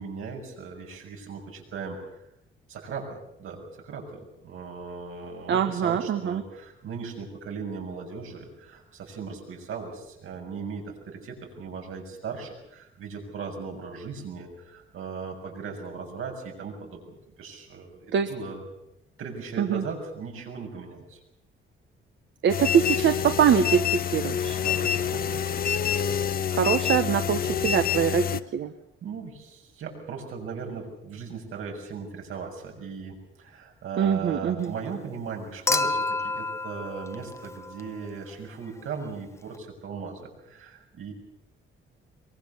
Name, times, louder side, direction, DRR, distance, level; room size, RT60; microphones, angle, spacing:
voice 1, 0.0-2.2 2.7-18.6 19.2-21.2 24.6-25.3 29.0-41.1, right 5 dB, 80° right, 1 dB, 7.1 m, -38 dB
voice 2, 5.5-6.4 18.1-18.3 19.6-19.8 22.4-24.6 26.5-28.7 34.0-34.7, right 8 dB, 65° right, 7 dB, 1.3 m, -23 dB
sound 1, 22.5-28.4, left 8 dB, 45° left, 0.9 m, -27 dB
Human group actions / Chink clink / Liquid, 35.7-38.1 39.5-39.6, left 3 dB, 15° left, 0.9 m, -29 dB
23.5 x 22.5 x 7.1 m, 0.82 s
wide cardioid pair, 160°, 21 cm